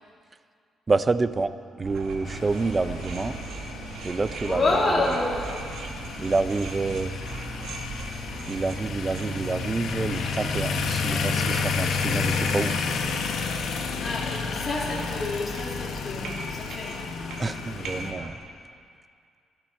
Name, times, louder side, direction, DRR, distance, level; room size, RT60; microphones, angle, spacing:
voice 1, 0.9-1.5 1.8-3.4 4.0-4.6 6.2-7.1 8.5-13.0 17.4-18.4, right 3 dB, 30° right, 13 dB, 0.7 m, -27 dB
sound 1, 1.8-18.3, right 4 dB, 70° right, 2.1 m, -39 dB
sound 2, 2.3-18.1, left 5 dB, 70° left, 1.4 m, -31 dB
voice 2, 4.4-5.4 14.0-17.0, left 2 dB, 30° left, -5 dB, 3.1 m, -28 dB
27.0 x 11.5 x 4.5 m, 2.2 s
cardioid pair, 90°, 0 cm